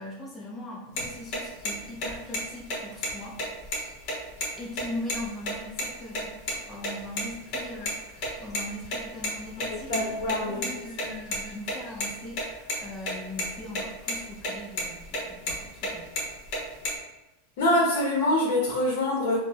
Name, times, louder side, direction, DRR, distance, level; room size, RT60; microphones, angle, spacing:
voice 1, 0.0-3.4 4.6-16.1, left 1 dB, 10° left, -4 dB, 0.4 m, -40 dB
sound 1, 1.0-1.1 1.3-1.4 1.7-1.8 2.0-2.4 2.7-2.8 3.0-3.1 3.4-4.5 4.7-4.8 5.1-5.2 5.5-5.8 6.1-6.6 6.8-7.9 8.2-10.7 11.0-12.8 13.1-13.2 13.4-13.8 14.1-14.5 14.8-15.9 16.2-16.9, left 1 dB, 35° left, 0.9 m, -30 dB
voice 2, 9.7-10.6 17.6-19.4, left 1 dB, 60° left, -3 dB, 0.7 m, -25 dB
4.0 x 2.0 x 2.2 m, 1.0 s
supercardioid pair, 165°, 0 cm